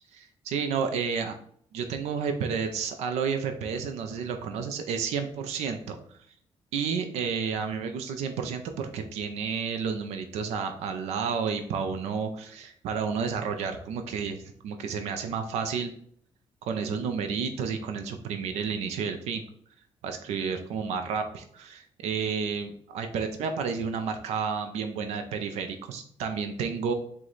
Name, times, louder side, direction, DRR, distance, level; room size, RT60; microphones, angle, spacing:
voice 1, 0.1-1.3 1.7-6.2 6.7-15.9 16.6-19.4 20.0-26.9, right 6 dB, 90° right, 6 dB, 0.4 m, -31 dB
4.6 x 2.1 x 3.9 m, 0.62 s
cardioid pair, 65°, 11 cm